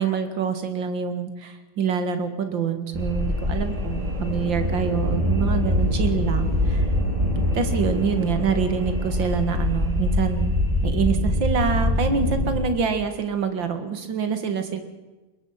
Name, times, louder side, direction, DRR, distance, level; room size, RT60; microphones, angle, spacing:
voice 1, 0.0-6.8 7.5-10.5 10.8-14.8, right 6 dB, 60° right, 8 dB, 2.5 m, -26 dB
sound 1, 2.9-12.6, left 1 dB, 15° right, 4.0 m, -24 dB
21.5 x 21.5 x 5.8 m, 1.2 s
omnidirectional pair, 2.3 m